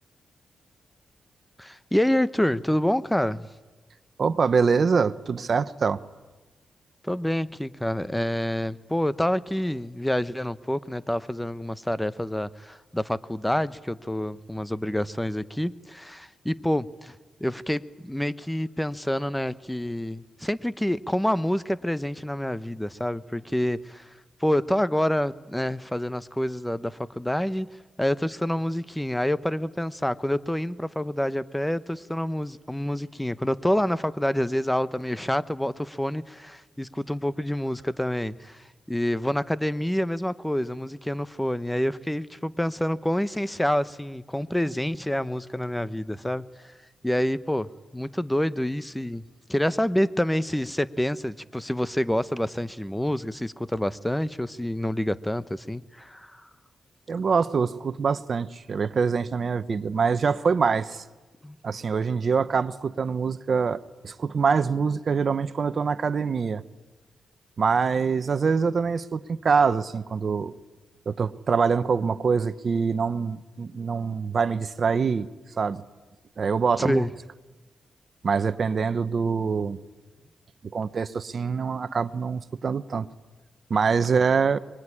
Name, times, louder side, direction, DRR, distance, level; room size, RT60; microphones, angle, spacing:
voice 1, 1.6-3.5 7.0-24.1 24.4-27.7 28.0-46.7 47.0-49.2 49.5-56.5 61.4-61.6 76.8-77.1, left 1 dB, 5° left, 15 dB, 1.0 m, -27 dB
voice 2, 4.2-6.0 57.1-61.0 61.6-66.6 67.6-70.5 71.1-75.3 75.6-75.8 76.4-77.0 78.2-79.8 80.7-83.1 83.7-84.6, right 5 dB, 55° right, 13 dB, 1.1 m, -24 dB
24.5 x 22.5 x 10.0 m, 1.2 s
cardioid pair, 75°, 0 cm